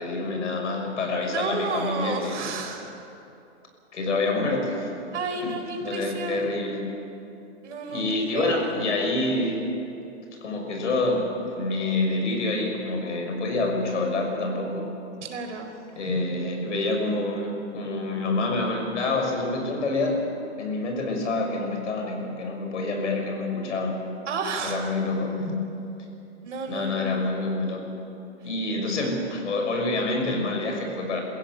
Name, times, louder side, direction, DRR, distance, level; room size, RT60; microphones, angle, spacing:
voice 1, 0.0-2.4 3.9-4.9 5.4-5.5 5.8-6.8 7.9-9.6 10.4-14.9 15.9-20.2 20.6-24.0 24.6-25.5 26.7-27.9 28.4-31.2, left 2 dB, 90° left, 3 dB, 6.1 m, -27 dB
voice 2, 1.2-2.9 5.1-6.7 7.6-8.8 15.2-15.7 24.3-24.9 26.4-27.2, right 4 dB, 85° right, 3 dB, 4.5 m, -32 dB
22.5 x 16.0 x 9.1 m, 2.8 s
hypercardioid pair, 160°, 35 cm